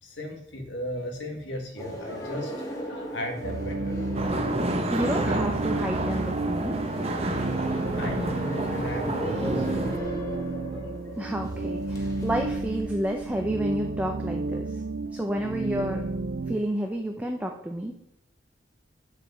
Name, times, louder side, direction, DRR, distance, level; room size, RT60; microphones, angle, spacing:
voice 1, 0.0-3.9 7.9-10.0 10.7-10.8, equal, 65° left, 3 dB, 1.9 m, -36 dB
sound 1, 1.8-13.4, equal, 20° left, 1.6 m, -37 dB
sound 2, 3.4-16.6, right 3 dB, 50° right, 0.4 m, -32 dB
sound 3, 4.1-10.0, right 1 dB, 30° right, 0.9 m, -30 dB
voice 2, 4.9-6.8 11.2-14.7 15.1-16.1 16.5-18.0, equal, 5° right, 2 dB, 0.6 m, -30 dB
7.2 x 5.1 x 7.3 m, 0.79 s
head